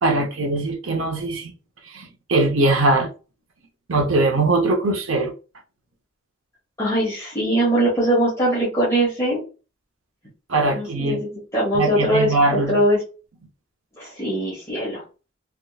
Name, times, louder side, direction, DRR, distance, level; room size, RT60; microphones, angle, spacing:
voice 1, 0.0-1.5 1.9-3.1 3.9-5.3 10.5-11.2 11.7-12.8, right 2 dB, 80° right, 0.8 m, -21 dB
voice 2, 6.8-9.4 10.7-13.0 14.0-15.0, right 1 dB, 15° left, 1.4 m, -21 dB
3.5 x 3.0 x 2.4 m
head